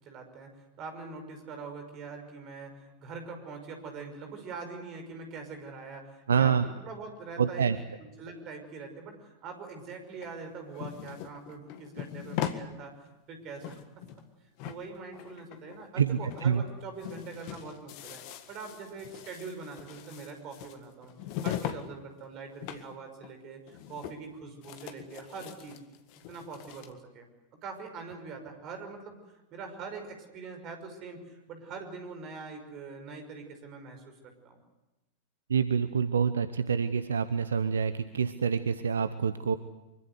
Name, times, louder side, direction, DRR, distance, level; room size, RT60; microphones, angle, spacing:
voice 1, 0.0-13.0 13.3-13.8 14.6-18.2 18.5-21.1 21.4-25.8 26.3-27.3 27.6-29.2 29.5-34.6, right 4 dB, 35° right, 6 dB, 5.8 m, -43 dB
voice 2, 6.3-6.6 7.4-7.8 16.0-16.6 35.5-39.6, right 6 dB, 70° right, 13 dB, 0.9 m, -27 dB
sound 1, 10.2-12.7 13.1-13.2 13.4-14.3 14.6-16.0 16.3-16.5 16.8-21.9 22.1-22.9 23.2-23.3 23.7-24.3 24.6-26.9, left 11 dB, 45° left, 1.8 m, -40 dB
24.5 x 24.0 x 8.2 m, 1.0 s
figure-of-eight pair, 90°, 0 cm